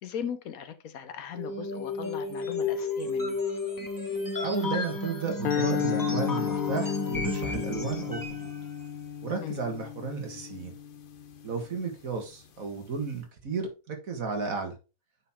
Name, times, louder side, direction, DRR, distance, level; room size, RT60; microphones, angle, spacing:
voice 1, 0.0-3.4 9.4-9.6, left 7 dB, 85° left, 1.4 m, -38 dB
sound 1, 1.3-8.5, left 3 dB, 15° left, 1.0 m, -33 dB
voice 2, 4.4-8.5 9.2-10.7 11.4-14.8, right 5 dB, 75° right, 2.0 m, -33 dB
sound 2, 5.4-11.8, left 9 dB, 50° left, 0.7 m, -33 dB
8.8 x 4.4 x 3.6 m
omnidirectional pair, 1.5 m